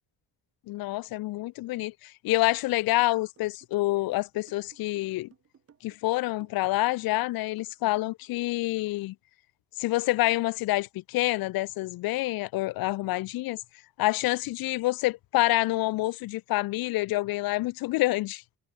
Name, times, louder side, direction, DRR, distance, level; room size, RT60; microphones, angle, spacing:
voice 1, 0.7-5.3 5.8-9.1 9.8-13.6 14.0-18.4, left 18 dB, 85° left, 0.5 m, -27 dB
sound 1, 3.0-8.2, right 7 dB, 40° right, 3.6 m, -59 dB
cardioid pair, 150°, 35 cm